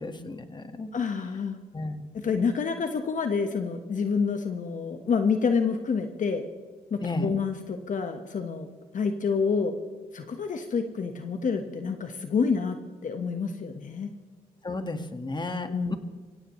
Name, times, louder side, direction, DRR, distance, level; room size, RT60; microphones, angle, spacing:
voice 1, 0.0-0.9 1.7-2.2 7.0-7.3 14.6-16.0, left 2 dB, 25° left, 8 dB, 1.8 m, -33 dB
voice 2, 0.9-1.6 2.1-6.4 6.9-8.7 8.9-9.7 10.1-14.1 15.7-15.9, left 5 dB, 50° left, 6 dB, 1.4 m, -28 dB
24.0 x 16.5 x 3.2 m, 1.4 s
supercardioid pair, 65°, 17 cm